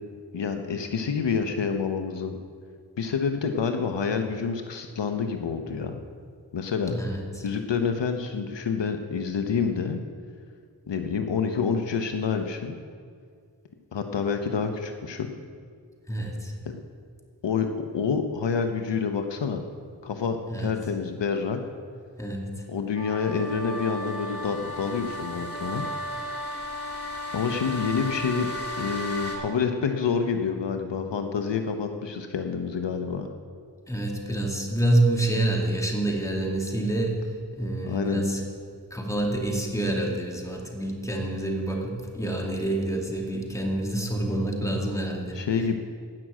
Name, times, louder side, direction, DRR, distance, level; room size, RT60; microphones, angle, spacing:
voice 1, 0.3-2.4 3.0-6.0 6.5-6.9 7.4-10.0 10.9-12.8 13.9-15.3 17.4-19.6 20.0-21.6 22.7-25.9 27.3-28.5 28.8-33.3 37.8-38.2 45.3-45.8, left 6 dB, 80° left, 6 dB, 1.0 m, -28 dB
voice 2, 6.9-7.5 16.1-16.5 20.5-20.7 22.2-22.5 33.9-37.2 37.5-38.4 38.9-45.4, right 1 dB, 5° left, 0 dB, 2.4 m, -27 dB
sound 1, 22.9-29.4, left 1 dB, 30° left, 2.9 m, -34 dB
14.0 x 6.2 x 9.1 m, 2.1 s
wide cardioid pair, 60°, 43 cm